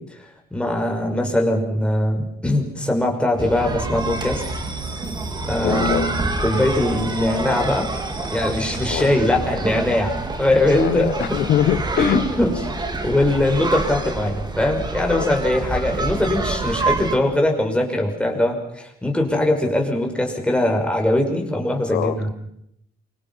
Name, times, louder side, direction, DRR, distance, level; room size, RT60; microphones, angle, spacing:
voice 1, 0.1-4.4 5.5-6.1 6.4-7.9 8.3-11.4 12.0-22.3, left 1 dB, 5° left, 2 dB, 6.1 m, -21 dB
sound 1, 3.4-17.2, right 3 dB, 25° right, 3.6 m, -27 dB
voice 2, 5.6-6.1 8.9-9.2 10.8-12.3 15.1-15.3 21.9-22.3, left 11 dB, 70° left, 10 dB, 1.3 m, -23 dB
28.5 x 25.0 x 5.8 m, 0.75 s
cardioid pair, 110°, 17 cm